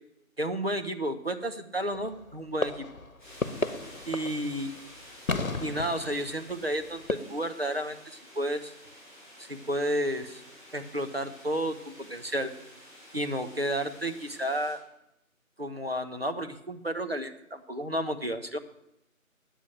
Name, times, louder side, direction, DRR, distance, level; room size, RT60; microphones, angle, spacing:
voice 1, 0.4-2.9 4.1-4.7 5.6-8.7 9.4-10.4 10.7-12.5 13.1-14.8 15.6-18.6, right 1 dB, 45° right, 7 dB, 0.9 m, -32 dB
sound 1, 1.9-2.4 2.6-4.8 5.3-7.1, left 3 dB, 65° left, 1.0 m, -33 dB
sound 2, 3.2-14.7, equal, 5° right, 5.5 m, -51 dB
9.6 x 8.2 x 7.8 m, 0.85 s
figure-of-eight pair, 175°, 42 cm